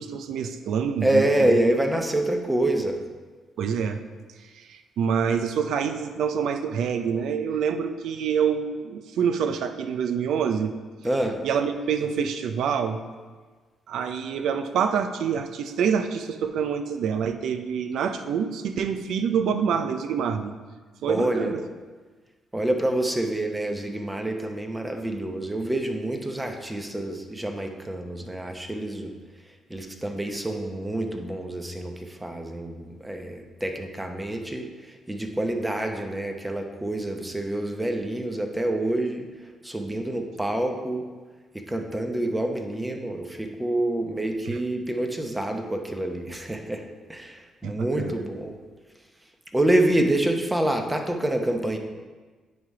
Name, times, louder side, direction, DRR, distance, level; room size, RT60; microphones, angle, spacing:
voice 1, 0.0-1.6 3.6-4.0 4.5-10.7 11.4-13.0 13.9-20.5 21.0-21.6 44.5-44.6 47.6-48.2, right 7 dB, 75° right, 8 dB, 0.5 m, -26 dB
voice 2, 1.0-3.0 11.0-11.4 21.1-21.5 22.5-29.1 29.7-39.3 39.6-41.0 41.5-46.8 47.1-48.6 49.5-51.8, right 1 dB, 10° right, 4 dB, 0.8 m, -27 dB
9.5 x 3.4 x 4.7 m, 1.4 s
cardioid pair, 90°, 0 cm